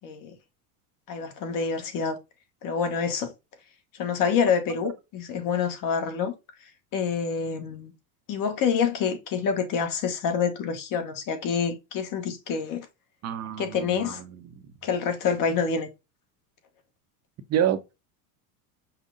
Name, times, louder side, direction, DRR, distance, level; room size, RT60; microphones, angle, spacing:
voice 1, 0.0-0.3 1.1-2.2 2.6-3.3 4.0-6.3 6.9-7.9 8.3-12.9 13.6-14.2 14.8-15.9, left 6 dB, 45° left, 1.2 m, -27 dB
voice 2, 13.2-14.5 17.5-17.8, right 10 dB, 35° right, 0.6 m, -28 dB
5.5 x 2.1 x 3.7 m
supercardioid pair, 115°, 48 cm